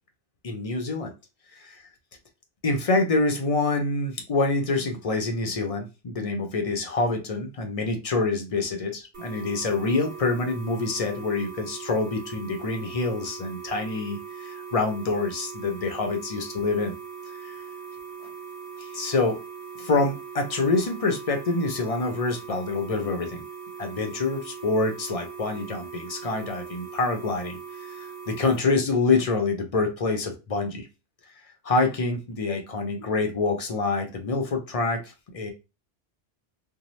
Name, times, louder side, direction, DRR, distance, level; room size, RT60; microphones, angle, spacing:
voice 1, 0.4-1.1 1.6-1.8 2.6-16.9 17.4-17.6 18.8-19.4 19.8-23.4 23.8-27.6 27.9-30.9 31.6-35.5, left 3 dB, 45° left, 4 dB, 0.5 m, -26 dB
sound 1, 9.1-28.6, right 6 dB, 50° right, 1.1 m, -40 dB
2.6 x 2.0 x 3.0 m, 0.28 s
omnidirectional pair, 1.1 m